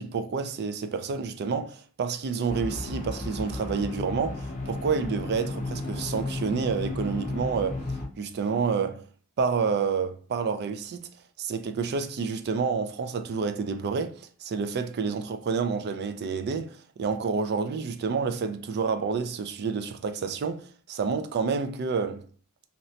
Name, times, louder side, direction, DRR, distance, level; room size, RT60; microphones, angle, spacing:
voice 1, 0.0-7.8 8.2-9.0 9.4-11.1 11.4-22.2, right 5 dB, 50° right, 0.4 m, -29 dB
sound 1, 2.5-8.1, left 2 dB, 35° left, 0.6 m, -33 dB
3.1 x 2.8 x 2.7 m
head